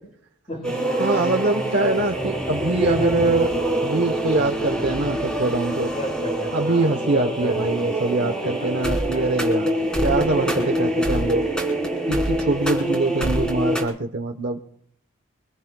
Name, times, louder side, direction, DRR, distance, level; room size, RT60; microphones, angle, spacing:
voice 1, 0.5-1.0 1.5-1.6 5.9-6.9 7.2-7.5 8.6-8.7 9.1-9.2, left 1 dB, 30° left, -3 dB, 7.6 m, -33 dB
sound 1, 0.6-13.8, right 1 dB, 5° left, 3.7 m, -25 dB
voice 2, 1.0-3.5 3.8-5.9 6.5-11.4 12.1-14.6, right 2 dB, 50° right, 4 dB, 0.9 m, -23 dB
25.0 x 21.5 x 2.3 m, 0.69 s
head